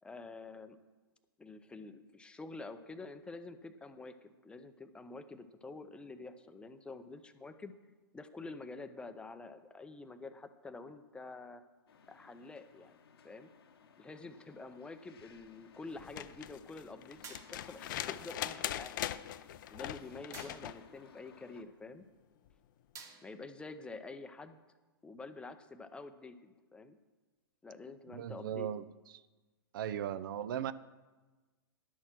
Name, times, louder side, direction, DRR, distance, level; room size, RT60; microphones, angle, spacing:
voice 1, 0.0-0.8 1.4-7.7 8.1-11.6 12.1-12.9 13.2-13.5 14.0-19.0 19.6-22.0 23.2-24.6 25.0-27.0 27.6-28.7, left 3 dB, 10° left, 9 dB, 0.6 m, -48 dB
sound 1, 11.9-21.6, left 6 dB, 75° left, 1.0 m, -60 dB
sound 2, 16.0-20.8 22.5-22.6, left 12 dB, 55° left, 0.5 m, -41 dB
sound 3, 17.2-17.8 20.3-20.9 23.0-23.6, right 5 dB, 25° right, 1.1 m, -52 dB
voice 2, 28.1-28.8 29.7-30.7, right 10 dB, 60° right, 14 dB, 0.5 m, -37 dB
11.0 x 6.5 x 6.0 m, 1.3 s
hypercardioid pair, 120°, 13 cm